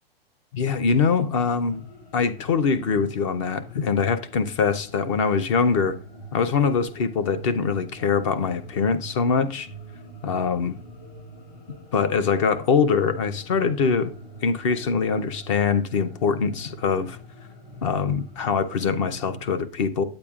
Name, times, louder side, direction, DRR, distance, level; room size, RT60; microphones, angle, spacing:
voice 1, 0.5-1.8 2.1-5.9 6.3-9.7 10.2-10.7 11.9-14.1 14.4-17.2 17.8-20.0, left 5 dB, 30° left, 0.5 m, -23 dB
sound 1, 1.4-19.4, right 1 dB, 50° left, 4.3 m, -44 dB
8.7 x 8.6 x 2.4 m
hypercardioid pair, 165°, 31 cm